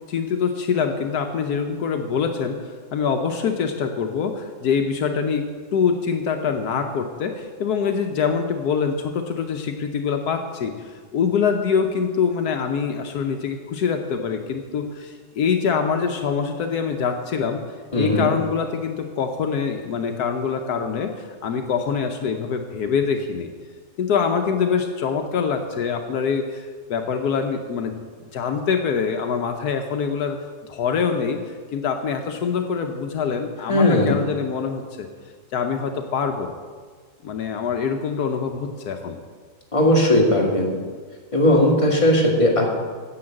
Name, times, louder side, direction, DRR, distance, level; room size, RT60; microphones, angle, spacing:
voice 1, 0.1-17.6 18.0-23.5 24.0-28.0 28.3-30.4 30.6-35.1 35.5-36.5 37.2-39.2, left 6 dB, 75° left, 5 dB, 1.3 m, -24 dB
voice 2, 17.9-18.3 33.7-34.2 39.7-40.7 41.3-42.8, left 1 dB, 20° left, -2 dB, 2.1 m, -18 dB
9.9 x 7.9 x 7.6 m, 1.5 s
omnidirectional pair, 1.7 m